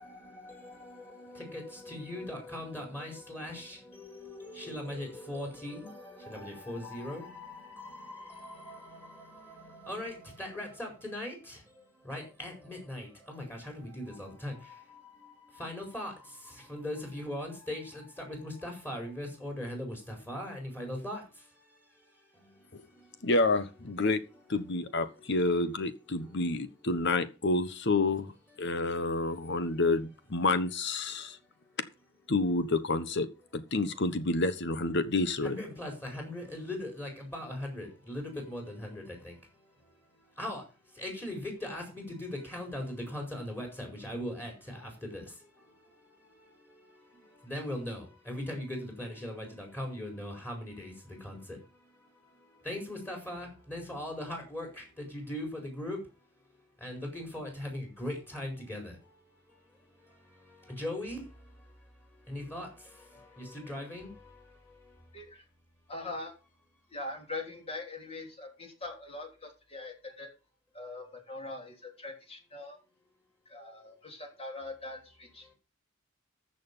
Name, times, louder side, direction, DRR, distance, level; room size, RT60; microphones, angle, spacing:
voice 1, 0.0-23.3 24.3-25.3 26.2-26.9 28.5-29.6 31.2-31.7 35.4-56.1 56.8-65.1 75.4-75.5, left 1 dB, 10° left, 4.9 m, -41 dB
voice 2, 23.2-24.2 24.5-28.3 28.6-31.4 32.3-33.3 33.5-35.6, left 2 dB, 60° left, 1.2 m, -29 dB
voice 3, 65.1-65.4 65.9-66.3 66.9-70.3 70.7-72.8 73.5-75.5, left 2 dB, 30° left, 3.3 m, -42 dB
14.0 x 6.6 x 5.6 m
head